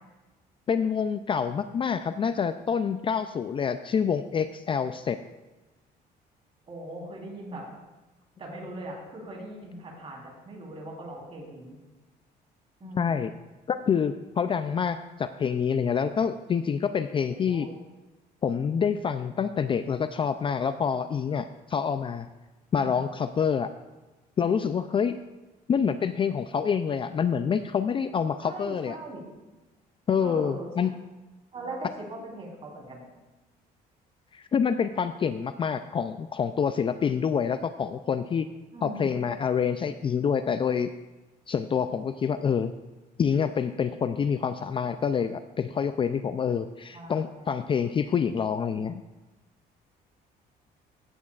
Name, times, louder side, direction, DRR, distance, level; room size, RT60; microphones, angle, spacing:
voice 1, 0.7-5.2 12.9-13.3 13.7-17.7 18.4-22.3 22.7-23.7 24.4-25.2 25.7-29.0 30.1-30.9 34.3-38.5 38.8-40.9 41.5-42.7 43.2-49.0, left 7 dB, 30° left, 10 dB, 0.4 m, -27 dB
voice 2, 6.7-7.6 8.4-11.8 12.8-13.2 17.2-17.7 22.8-23.1 28.4-29.2 30.2-30.7 31.5-33.0 38.7-39.1 46.9-47.6, right 1 dB, 35° right, -2 dB, 3.8 m, -40 dB
15.5 x 8.6 x 2.4 m, 1.1 s
cardioid pair, 110°, 17 cm